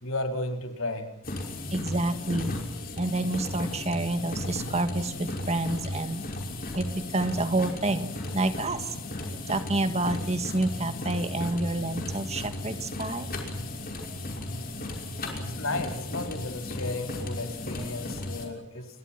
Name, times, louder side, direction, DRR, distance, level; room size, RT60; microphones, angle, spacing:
voice 1, 0.0-1.1 15.6-18.9, left 2 dB, 70° left, 5 dB, 4.3 m, -33 dB
sound 1, 1.2-18.5, left 1 dB, 45° left, 5.8 m, -35 dB
voice 2, 1.7-2.5 3.0-6.2 6.7-8.9 9.5-13.3 17.8-17.9, right 2 dB, 30° right, 9 dB, 1.9 m, -28 dB
29.0 x 23.0 x 6.0 m, 0.78 s
head